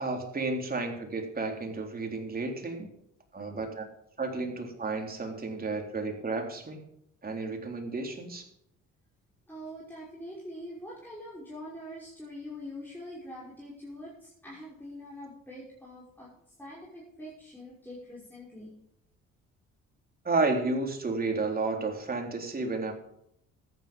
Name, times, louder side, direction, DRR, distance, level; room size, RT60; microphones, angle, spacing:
voice 1, 0.0-2.9 3.3-3.8 4.2-6.8 7.2-8.5 20.2-22.9, right 3 dB, 30° right, 2 dB, 3.7 m, -32 dB
voice 2, 9.5-16.3 16.6-18.7, left 1 dB, 5° left, -6 dB, 5.5 m, -44 dB
14.0 x 10.0 x 5.2 m, 0.75 s
cardioid pair, 90°, 30 cm